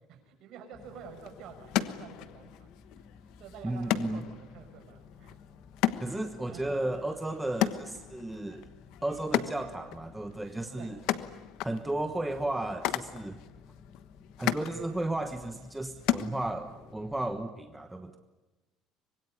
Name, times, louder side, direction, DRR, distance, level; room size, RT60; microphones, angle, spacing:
voice 1, 0.1-2.7 3.4-5.4 6.5-6.8 10.8-10.9, right 7 dB, 55° right, 5 dB, 6.7 m, -49 dB
sound 1, 0.7-17.5, left 6 dB, 25° left, 1.4 m, -54 dB
sound 2, 0.8-16.9, left 13 dB, 65° left, 1.2 m, -36 dB
voice 2, 3.6-4.2 6.0-8.7 9.0-11.0 11.6-13.4 14.4-18.2, right 2 dB, 5° right, 6 dB, 1.2 m, -34 dB
25.5 x 22.0 x 9.9 m, 1.2 s
cardioid pair, 160°, 0 cm